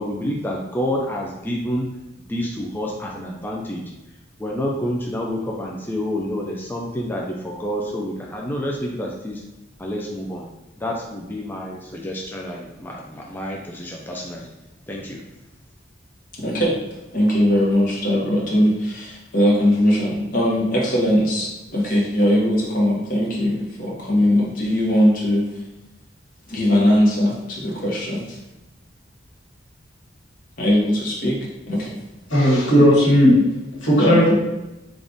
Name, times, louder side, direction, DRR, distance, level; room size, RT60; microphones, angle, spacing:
voice 1, 0.0-1.9 2.3-3.8 4.4-9.4 9.8-10.4 10.8-14.5 14.9-15.2, equal, 10° left, -2 dB, 0.3 m, -28 dB
voice 2, 16.4-16.8 17.1-25.5 26.5-28.4 30.6-31.4 31.7-31.9 34.0-34.4, equal, 50° left, -4 dB, 0.9 m, -20 dB
voice 3, 32.3-33.4 33.8-34.4, equal, 85° left, -5 dB, 1.5 m, -15 dB
3.5 x 2.4 x 3.9 m, 0.98 s
head